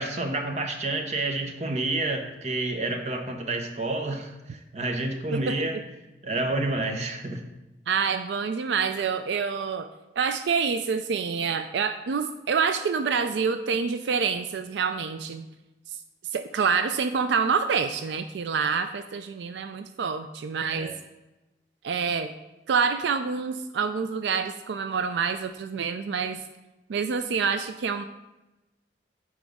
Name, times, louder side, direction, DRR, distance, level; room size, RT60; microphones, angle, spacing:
voice 1, 0.0-5.8 6.2-7.4 20.7-20.9, right 2 dB, 40° right, 5 dB, 0.8 m, -29 dB
voice 2, 5.3-5.8 7.9-9.9 10.2-15.4 16.3-20.9 21.8-22.3 22.7-26.4 26.9-28.0, right 5 dB, 80° right, 9 dB, 0.4 m, -27 dB
9.1 x 4.9 x 3.5 m, 1.0 s
head